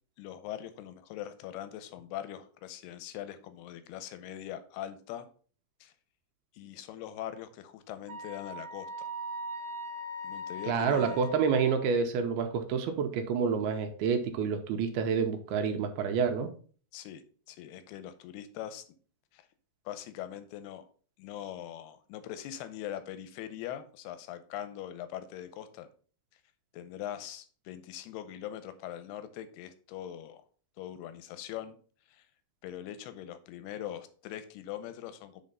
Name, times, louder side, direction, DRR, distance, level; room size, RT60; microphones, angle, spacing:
voice 1, 0.2-5.3 5.8-5.9 6.5-8.9 10.2-11.2 16.9-18.8 19.3-19.4 19.9-20.9 21.2-25.9 26.7-30.4 30.8-31.8 32.1-32.2 32.6-35.4, left 11 dB, 90° left, 11 dB, 2.8 m, -42 dB
Wind instrument woodwind instrument, 8.1-11.9, left 1 dB, 55° right, 1.6 m, -40 dB
voice 2, 10.7-16.5, right 6 dB, 85° right, 6 dB, 2.7 m, -28 dB
7.5 x 3.8 x 5.4 m, 0.42 s
omnidirectional pair, 4.5 m